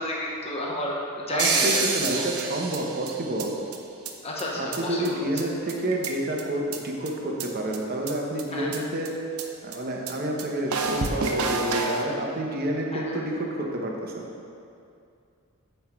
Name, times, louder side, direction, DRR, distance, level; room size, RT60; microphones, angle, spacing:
voice 1, 0.0-2.3 4.2-5.3 8.5-8.7 12.9-13.2, left 1 dB, 30° left, -3 dB, 0.9 m, -30 dB
voice 2, 1.3-3.6 4.6-9.1 9.6-14.3, right 1 dB, 45° right, 0 dB, 0.9 m, -29 dB
sound 1, 1.4-3.4 3.7-3.8 4.0-4.1 4.4-4.5 4.7-4.8 5.0-5.1 5.4-5.5 5.7-6.4 6.7-6.8 7.1-7.2 7.4-7.5 7.7-7.8 8.1-8.2 8.4-8.5 8.7-8.8 9.0-9.1 9.4-9.5 9.7-9.8 10.1-10.2 10.4-10.5 10.7-12.0, right 4 dB, 90° right, 0.7 m, -28 dB
8.0 x 5.5 x 4.4 m, 2.5 s
head